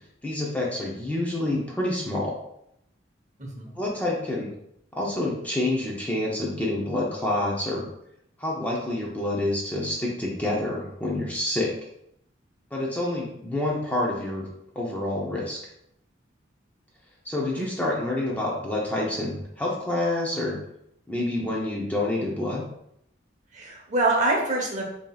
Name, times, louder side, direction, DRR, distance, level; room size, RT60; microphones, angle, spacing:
voice 1, 0.2-2.4 3.8-4.5 4.9-7.8 8.4-11.7 12.7-14.4 14.8-15.6 17.2-20.6 21.1-22.6, left 1 dB, 10° left, -4 dB, 0.6 m, -27 dB
voice 2, 3.4-3.8 17.6-17.7 23.5-24.8, right 2 dB, 40° right, -1 dB, 0.8 m, -25 dB
5.1 x 2.8 x 2.3 m, 0.77 s
head